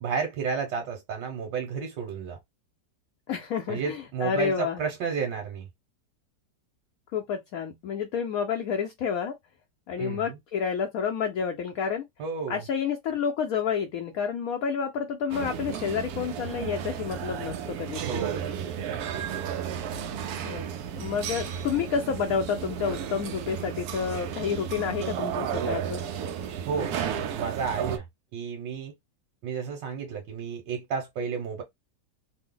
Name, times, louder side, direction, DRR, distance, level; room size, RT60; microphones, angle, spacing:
voice 1, 0.0-2.4 3.7-5.7 10.0-10.4 12.2-12.6 18.0-18.5 18.9-19.3 26.7-28.0 28.3-28.9 29.4-31.6, right 6 dB, 90° right, 1.6 m, -32 dB
voice 2, 3.3-4.8 7.1-9.3 9.9-12.1 12.5-18.0 20.4-20.6 21.0-26.0, left 7 dB, 70° left, 0.9 m, -29 dB
sound 1, 15.3-28.0, right 8 dB, 70° right, 1.0 m, -33 dB
3.3 x 2.0 x 3.7 m
omnidirectional pair, 1.9 m